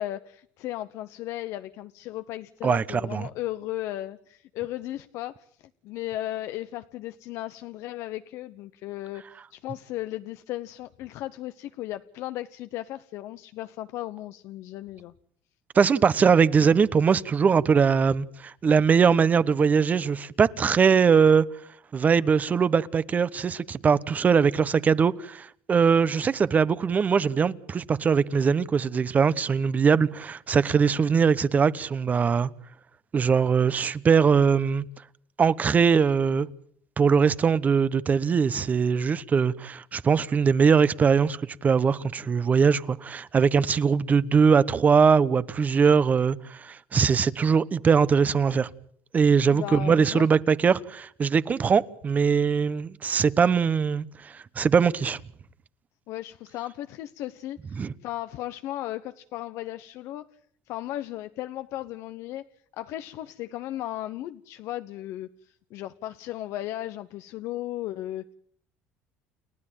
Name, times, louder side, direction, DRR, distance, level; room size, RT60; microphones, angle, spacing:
voice 1, 0.0-9.2 9.5-15.1 49.5-50.3 56.1-60.3 60.7-62.5 62.7-68.3, left 14 dB, 70° left, 0.9 m, -36 dB
voice 2, 2.6-3.2 15.7-21.5 21.9-32.5 33.1-34.8 35.4-36.5 37.0-48.7 49.1-55.2 57.8-57.9, right 6 dB, 30° right, 1.0 m, -21 dB
30.0 x 12.5 x 9.0 m
cardioid pair, 110°, 5 cm